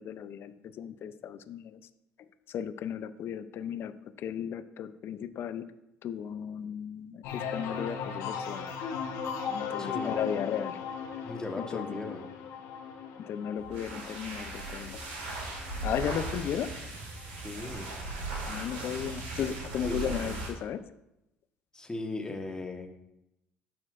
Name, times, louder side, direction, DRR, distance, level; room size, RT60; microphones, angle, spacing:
voice 1, 0.0-1.8 2.5-5.7 6.0-8.6 9.5-10.8 11.6-12.1 13.3-15.1 15.8-16.8 18.4-20.8, left 9 dB, 55° left, 13 dB, 0.4 m, -35 dB
sound 1, 7.2-16.8 17.2-17.7, left 6 dB, 70° left, 0.9 m, -38 dB
voice 2, 9.8-10.3 11.2-12.3 17.4-17.9 19.8-20.4 21.7-23.0, left 2 dB, 15° left, 3 dB, 1.2 m, -38 dB
sound 2, 13.6-20.6, right 2 dB, 85° right, 1.9 m, -38 dB
12.5 x 4.4 x 2.5 m, 0.88 s
hypercardioid pair, 70°, 5 cm